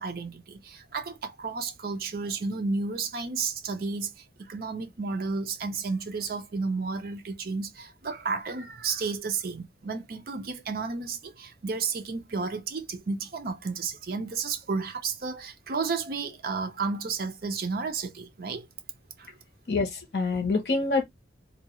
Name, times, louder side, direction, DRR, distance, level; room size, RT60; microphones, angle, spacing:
voice 1, 0.0-18.7 19.2-19.3, right 4 dB, 55° right, 0.5 m, -32 dB
voice 2, 19.7-21.0, left 3 dB, 60° left, 0.8 m, -26 dB
2.5 x 2.3 x 2.9 m
head